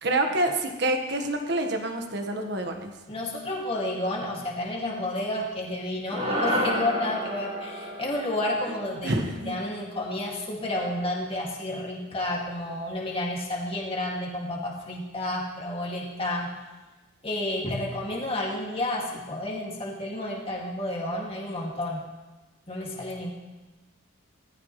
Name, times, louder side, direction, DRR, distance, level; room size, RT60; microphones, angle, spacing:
voice 1, 0.0-2.9 9.0-9.7, right 1 dB, 50° right, 4 dB, 1.5 m, -27 dB
voice 2, 3.1-9.1 9.5-16.5 17.2-22.0 22.7-23.3, left 1 dB, 25° left, -2 dB, 2.3 m, -31 dB
sound 1, 6.1-10.6, equal, 30° right, 3.6 m, -31 dB
18.0 x 14.0 x 3.2 m, 1.2 s
head